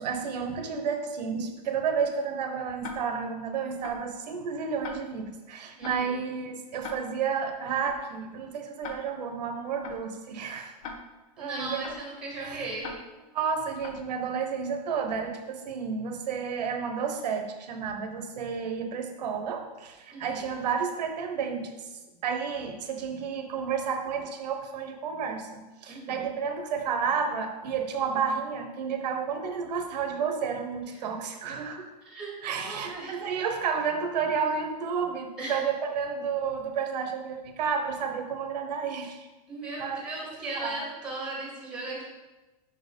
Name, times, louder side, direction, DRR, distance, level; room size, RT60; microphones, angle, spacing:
voice 1, 0.0-10.7 11.4-11.8 12.4-12.7 13.3-31.9 32.4-39.3 39.8-40.0 40.5-40.8, right 6 dB, 80° right, 5 dB, 1.1 m, -31 dB
Tick-tock, 2.8-2.9 3.8-4.0 4.8-4.9 5.8-6.0 6.8-6.9 7.8-8.0 8.8-8.9 9.8-10.0 10.8-10.9 11.8-12.0 12.8-12.9 13.8-14.0, left 5 dB, 55° left, 0.9 m, -39 dB
voice 2, 5.8-6.2 11.4-12.9 20.1-20.4 25.9-26.3 30.9-31.0 32.0-33.2 35.4-35.6 39.5-42.0, right 2 dB, 5° right, -3 dB, 1.3 m, -37 dB
5.6 x 4.5 x 5.3 m, 1.1 s
supercardioid pair, 170°, 21 cm